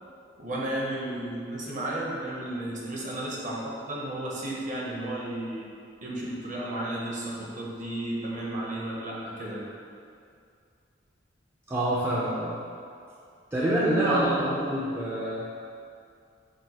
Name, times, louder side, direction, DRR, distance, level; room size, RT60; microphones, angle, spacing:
voice 1, 0.4-5.7 6.0-9.6 14.0-14.4, right 1 dB, 40° right, -4 dB, 0.7 m, -33 dB
voice 2, 11.7-12.6 13.5-15.5, right 1 dB, 15° right, -8 dB, 0.3 m, -26 dB
6.1 x 2.2 x 2.8 m, 2.4 s
head